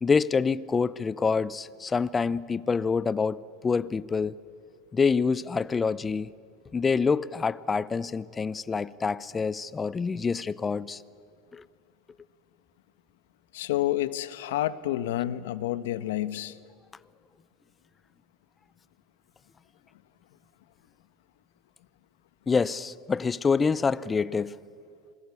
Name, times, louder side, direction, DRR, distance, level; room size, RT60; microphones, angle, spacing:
voice 1, 0.0-4.3 4.9-6.3 6.7-11.0 11.5-11.6 22.5-24.6, left 5 dB, 20° left, 0.7 m, -26 dB
voice 2, 13.5-16.6, left 14 dB, 90° left, 1.1 m, -29 dB
27.0 x 21.0 x 8.4 m
supercardioid pair, 120°, 0 cm